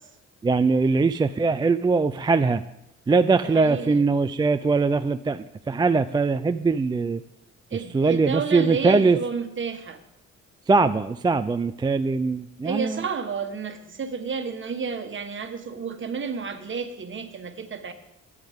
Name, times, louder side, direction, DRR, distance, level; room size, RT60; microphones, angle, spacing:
voice 1, 0.4-2.6 3.1-7.2 7.9-9.2 10.7-13.0, right 4 dB, 15° right, 10 dB, 0.3 m, -21 dB
voice 2, 3.4-4.1 7.7-10.0 12.6-17.9, right 5 dB, 40° right, 7 dB, 1.3 m, -31 dB
14.0 x 9.7 x 3.6 m, 0.84 s
cardioid pair, 90°, 30 cm